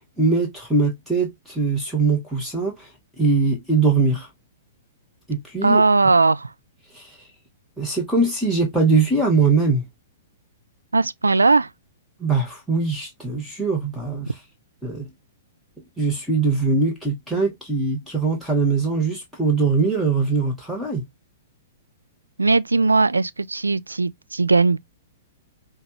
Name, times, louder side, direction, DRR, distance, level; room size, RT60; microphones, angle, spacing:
voice 1, 0.2-2.9 3.2-4.3 5.3-5.8 6.9-7.3 7.8-9.8 12.2-14.4 14.8-15.1 16.0-21.0, right 4 dB, ahead, 1.1 m, -22 dB
voice 2, 5.6-6.5 10.9-11.7 22.4-24.8, right 3 dB, 75° right, 0.3 m, -18 dB
5.7 x 2.3 x 2.9 m
figure-of-eight pair, 110°, 0 cm